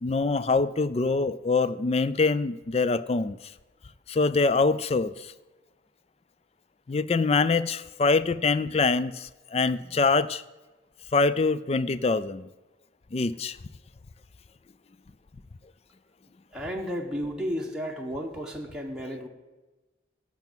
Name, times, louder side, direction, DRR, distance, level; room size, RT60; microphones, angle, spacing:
voice 1, 0.0-3.5 4.1-5.3 6.9-10.4 11.1-12.5 13.1-13.6, left 3 dB, 30° left, 16 dB, 0.4 m, -24 dB
voice 2, 16.5-19.3, equal, 5° right, -1 dB, 1.1 m, -33 dB
12.0 x 5.8 x 8.9 m, 1.2 s
head